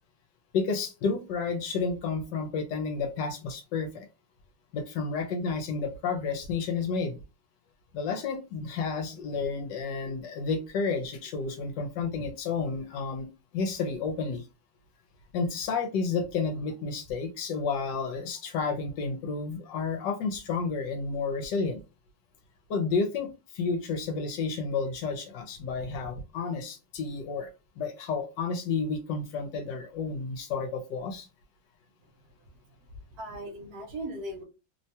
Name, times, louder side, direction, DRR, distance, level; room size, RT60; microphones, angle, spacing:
voice 1, 0.5-4.1 4.7-7.2 7.9-13.3 13.5-14.5 15.3-21.8 22.7-23.3 23.5-27.5 27.8-31.3, left 4 dB, 75° left, 7 dB, 1.2 m, -31 dB
voice 2, 32.5-34.4, right 1 dB, 65° right, 2 dB, 1.2 m, -39 dB
3.1 x 2.2 x 2.7 m, 0.28 s
omnidirectional pair, 2.0 m